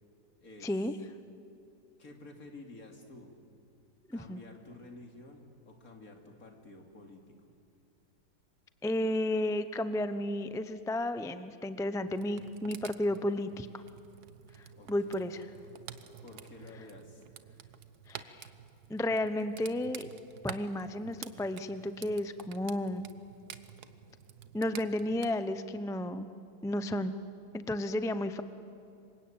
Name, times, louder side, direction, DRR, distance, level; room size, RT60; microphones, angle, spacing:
voice 1, 0.6-0.9 4.1-4.4 8.8-13.8 14.6-15.5 18.1-18.5 18.9-20.1 20.4-23.1 24.5-26.3 26.6-27.1 27.5-28.4, left 1 dB, 5° left, 11 dB, 0.3 m, -33 dB
voice 2, 2.0-3.4 4.1-7.4 14.8-15.2 16.2-17.3, left 2 dB, 55° left, 3 dB, 3.1 m, -51 dB
sound 1, 12.1-25.3, right 8 dB, 65° right, 1.5 m, -50 dB
27.0 x 24.0 x 8.9 m, 2.6 s
omnidirectional pair, 1.9 m